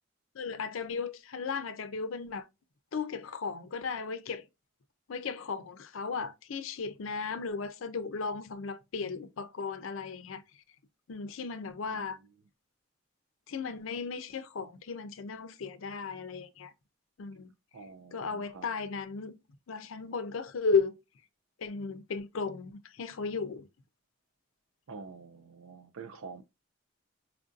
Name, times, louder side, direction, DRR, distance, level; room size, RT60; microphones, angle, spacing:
voice 1, 0.3-2.5 2.9-4.4 5.1-10.4 11.1-12.2 13.5-16.7 17.2-17.5 18.1-19.4 19.7-20.9 21.6-23.7, left 5 dB, 80° left, 0.5 m, -35 dB
voice 2, 17.7-18.7 24.9-26.4, right 5 dB, 85° right, 0.4 m, -47 dB
4.5 x 2.5 x 2.4 m
head